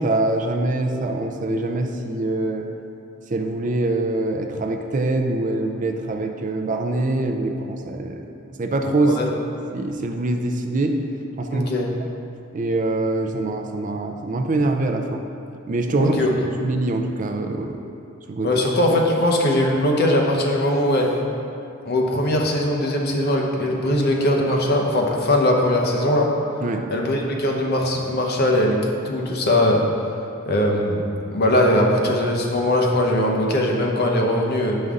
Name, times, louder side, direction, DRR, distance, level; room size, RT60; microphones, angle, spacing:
voice 1, 0.0-2.7 3.3-8.2 8.6-9.2 9.7-11.0 11.4-11.7 12.0-12.1 12.5-15.2 15.7-16.1 16.6-17.8 18.3-18.5 26.6-26.9, right 2 dB, 40° right, 4 dB, 0.4 m, -24 dB
voice 2, 11.5-11.9 15.9-16.3 18.4-21.2 21.8-26.3 26.9-28.8 29.0-29.8 30.5-31.0 31.3-34.8, left 1 dB, 50° left, 0 dB, 0.8 m, -20 dB
8.2 x 5.3 x 3.7 m, 2.7 s
head